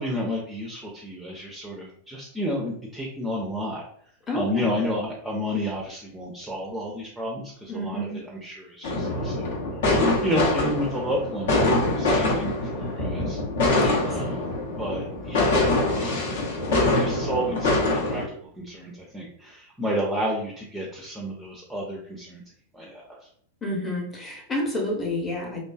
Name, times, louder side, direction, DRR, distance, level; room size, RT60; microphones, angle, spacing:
voice 1, 0.0-3.8 4.3-9.5 10.2-13.4 14.0-14.5 14.8-16.4 16.9-22.4 22.7-23.2, equal, 10° right, -2 dB, 0.4 m, -31 dB
voice 2, 4.3-4.7 7.7-8.2 13.7-14.0 23.6-25.6, left 1 dB, 20° left, 0 dB, 0.8 m, -29 dB
sound 1, 8.8-18.2, left 2 dB, 60° left, 0.6 m, -24 dB
2.5 x 2.2 x 2.2 m, 0.62 s
figure-of-eight pair, 90°, 0 cm